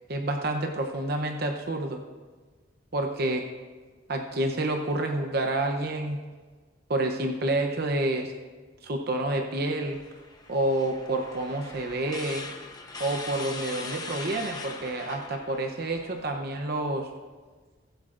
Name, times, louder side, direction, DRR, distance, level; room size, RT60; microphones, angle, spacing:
voice 1, 0.1-2.0 2.9-3.4 4.1-6.2 6.9-8.3 8.8-10.0 10.5-12.5 13.0-17.1, right 2 dB, 55° right, 3 dB, 0.8 m, -28 dB
sound 1, 9.9-16.4, left 3 dB, 20° left, 0.9 m, -41 dB
19.0 x 8.0 x 2.5 m, 1.4 s
head